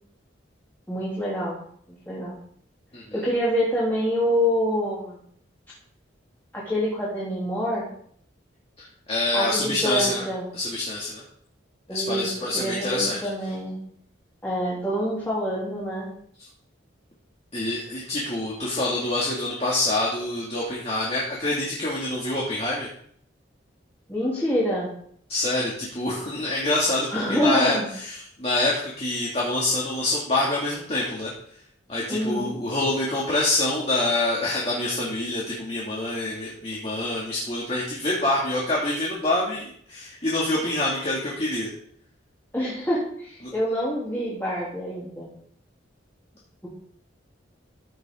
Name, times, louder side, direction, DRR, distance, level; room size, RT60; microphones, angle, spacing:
voice 1, 0.9-1.6 2.1-2.4 3.1-5.2 6.5-7.9 9.3-10.4 11.9-12.3 12.5-13.8 14.4-16.1 24.1-24.9 27.1-27.9 32.1-32.6 42.5-45.3, equal, 10° left, -8 dB, 3.7 m, -26 dB
voice 2, 8.8-10.2 10.5-11.2 11.9-13.2 17.5-22.9 25.3-31.3 31.9-41.7 43.4-43.5, left 2 dB, 30° left, -5 dB, 2.8 m, -26 dB
15.5 x 7.5 x 4.0 m, 0.63 s
head